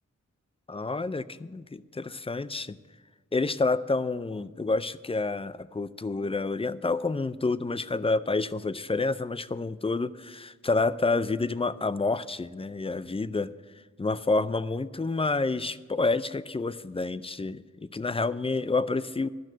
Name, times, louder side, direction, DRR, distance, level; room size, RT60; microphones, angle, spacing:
voice 1, 0.7-2.8 3.3-13.5 14.0-19.3, left 3 dB, 20° left, 15 dB, 0.4 m, -29 dB
12.0 x 6.1 x 9.1 m, 1.5 s
wide cardioid pair, 55°, 30 cm